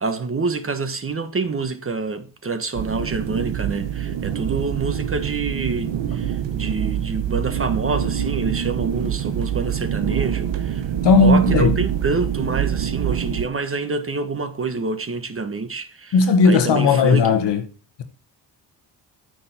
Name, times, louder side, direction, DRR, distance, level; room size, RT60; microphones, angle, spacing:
voice 1, 0.0-10.8 11.2-16.2 16.4-17.3, right 4 dB, 30° right, 1.2 m, -27 dB
sound 1, 2.7-13.5, right 9 dB, 75° right, 1.2 m, -25 dB
voice 2, 11.0-11.8 16.1-17.6, left 4 dB, 70° left, 1.5 m, -16 dB
9.3 x 7.2 x 4.4 m
cardioid pair, 115°, 43 cm